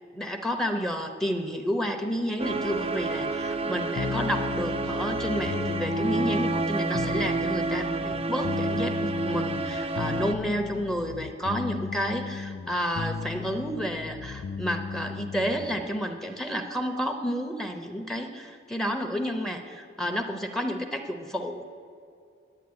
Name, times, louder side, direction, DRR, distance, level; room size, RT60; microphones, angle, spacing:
voice 1, 0.1-21.6, equal, ahead, 5 dB, 0.7 m, -30 dB
sound 1, 2.4-10.3, right 2 dB, 30° right, 0.5 m, -29 dB
sound 2, 4.0-15.8, left 5 dB, 55° left, 0.3 m, -36 dB
10.5 x 8.9 x 9.5 m, 2.4 s
head